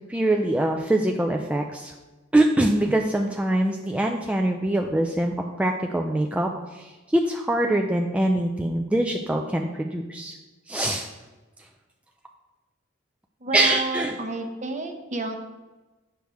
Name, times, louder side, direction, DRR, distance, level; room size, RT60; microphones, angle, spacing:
voice 1, 0.1-1.9 2.3-10.3 10.7-11.1 13.5-14.1, right 1 dB, 5° right, 2 dB, 0.3 m, -24 dB
voice 2, 13.4-15.4, right 3 dB, 40° right, 5 dB, 0.8 m, -30 dB
7.9 x 6.2 x 3.4 m, 1.2 s
head